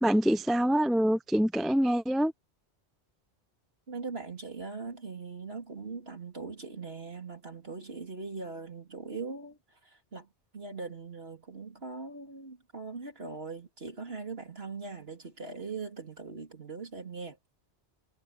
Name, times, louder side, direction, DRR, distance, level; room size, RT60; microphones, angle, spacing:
voice 1, 0.0-2.3, equal, ahead, 0.6 m, -25 dB
voice 2, 3.9-9.6 9.8-10.3 10.5-17.4, right 4 dB, 60° right, 3.7 m, -40 dB
omnidirectional pair, 1.2 m